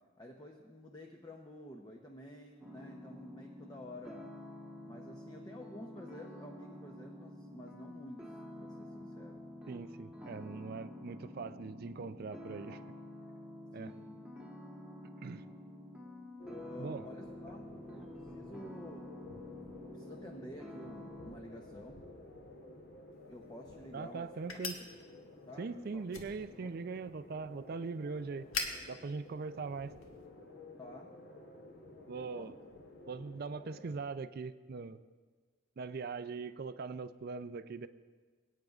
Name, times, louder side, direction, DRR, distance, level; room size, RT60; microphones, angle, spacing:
voice 1, 0.2-4.3 4.8-8.2 8.6-9.4 13.8-14.0 16.5-17.6 18.0-19.1 19.9-22.0 23.3-24.3 25.5-26.0 26.5-26.7 30.8-31.1 32.3-32.5, left 1 dB, 20° left, 1 dB, 0.7 m, -50 dB
sound 1, 2.6-21.3, left 1 dB, 5° right, 1.2 m, -49 dB
voice 2, 9.7-12.8 13.7-13.9 15.2-15.4 16.8-17.1 23.9-24.8 25.6-28.5 28.9-29.9 32.1-32.5 33.1-35.0 35.8-37.9, right 4 dB, 45° right, 12 dB, 0.4 m, -41 dB
sound 2, 16.4-34.0, left 2 dB, 50° left, 0.9 m, -53 dB
sound 3, 23.1-30.3, left 4 dB, 75° left, 1.3 m, -46 dB
22.5 x 9.1 x 2.4 m, 1.4 s
head